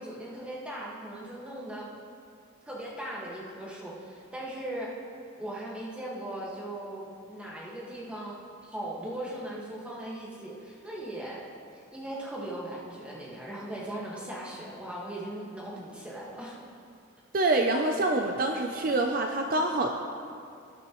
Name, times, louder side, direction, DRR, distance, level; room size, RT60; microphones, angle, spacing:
voice 1, 0.0-1.9 2.6-4.9 5.4-16.6, right 1 dB, 5° right, -5 dB, 1.7 m, -39 dB
voice 2, 17.3-19.9, right 2 dB, 45° right, 3 dB, 0.5 m, -26 dB
19.0 x 8.7 x 3.1 m, 2.4 s
head